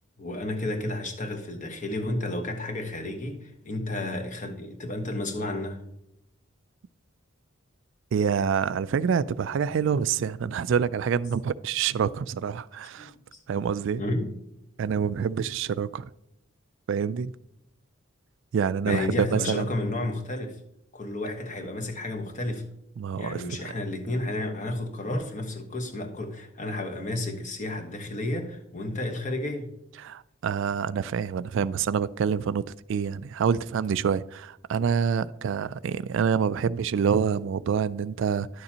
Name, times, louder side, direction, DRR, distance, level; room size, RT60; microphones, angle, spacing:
voice 1, 0.2-5.8 13.0-13.2 13.5-13.6 14.0-14.3 18.8-20.6 20.9-22.7 23.1-29.7, left 1 dB, 40° left, 1.2 m, -32 dB
voice 2, 8.1-13.1 13.5-14.0 14.8-16.1 16.9-17.3 18.5-19.7 23.0-23.6 30.0-32.6 32.9-38.6, right 7 dB, 65° right, 0.3 m, -27 dB
11.0 x 6.6 x 2.8 m
head